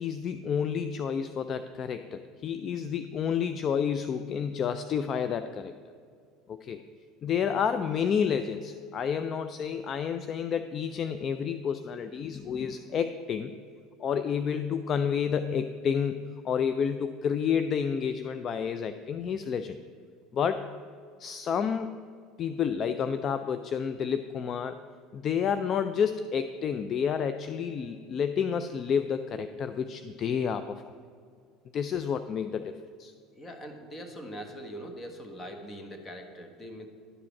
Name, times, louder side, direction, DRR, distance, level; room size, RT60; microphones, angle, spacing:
voice 1, 0.0-5.7 6.5-6.8 7.2-13.5 14.0-19.8 20.3-20.7 21.2-21.9 22.4-24.8 25.1-30.9 31.7-33.1, left 7 dB, 40° left, 10 dB, 0.4 m, -30 dB
voice 2, 33.3-36.9, equal, 20° left, 5 dB, 1.4 m, -42 dB
11.0 x 5.0 x 5.9 m, 2.2 s
supercardioid pair, 105°, 0 cm